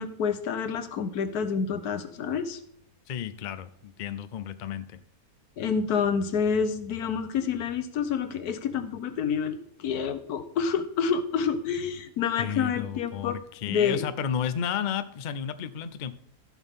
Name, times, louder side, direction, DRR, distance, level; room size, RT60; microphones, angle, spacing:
voice 1, 0.0-2.6 5.6-13.4 13.7-14.1, left 6 dB, 80° left, 11 dB, 1.4 m, -28 dB
voice 2, 3.1-5.0 12.4-16.1, left 8 dB, 65° left, 12 dB, 0.4 m, -32 dB
15.0 x 6.1 x 3.6 m, 0.69 s
omnidirectional pair, 1.6 m